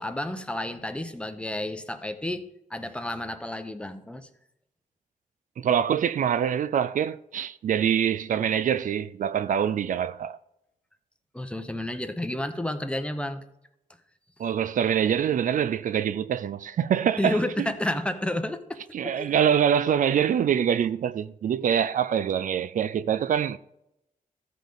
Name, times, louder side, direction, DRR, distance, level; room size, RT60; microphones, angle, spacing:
voice 1, 0.0-4.3 11.3-13.4 17.2-18.8 19.2-19.3, left 1 dB, 10° left, 0.7 m, -31 dB
voice 2, 5.6-10.4 14.4-17.7 18.9-23.6, right 8 dB, 65° right, 0.4 m, -25 dB
14.5 x 5.3 x 3.9 m
wide cardioid pair, 135°, 14 cm